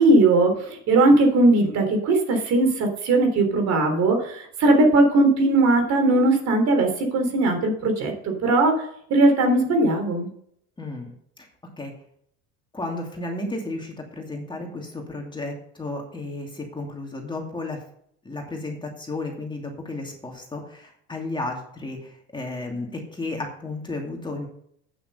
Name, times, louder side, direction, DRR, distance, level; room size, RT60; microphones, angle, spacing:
voice 1, 0.0-8.7 9.1-10.3, right 2 dB, 55° right, 4 dB, 3.5 m, -19 dB
voice 2, 10.8-11.1 11.8-11.9 12.7-17.8 18.2-24.5, left 2 dB, 15° left, 1 dB, 2.6 m, -33 dB
9.1 x 6.8 x 6.7 m, 0.67 s
supercardioid pair, 100°, 33 cm